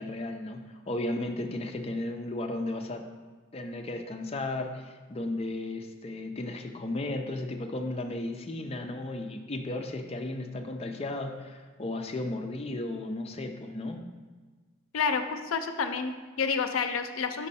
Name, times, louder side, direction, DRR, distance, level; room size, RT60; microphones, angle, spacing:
voice 1, 0.0-3.0 3.5-14.0, left 2 dB, 30° left, 4 dB, 0.5 m, -34 dB
voice 2, 14.9-17.5, left 5 dB, 80° left, 7 dB, 0.5 m, -29 dB
5.4 x 5.3 x 4.2 m, 1.4 s
head